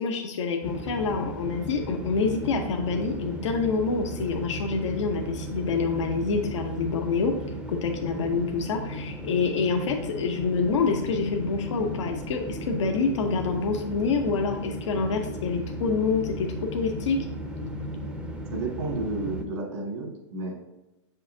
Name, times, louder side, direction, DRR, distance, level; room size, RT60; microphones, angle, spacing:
voice 1, 0.0-7.3 7.7-17.2, left 4 dB, 80° left, 2 dB, 0.9 m, -27 dB
sound 1, 0.6-19.4, equal, 5° right, 0.6 m, -36 dB
voice 2, 18.5-20.5, right 2 dB, 75° right, 1 dB, 2.0 m, -31 dB
6.9 x 5.5 x 2.7 m, 0.98 s
hypercardioid pair, 150°, 15 cm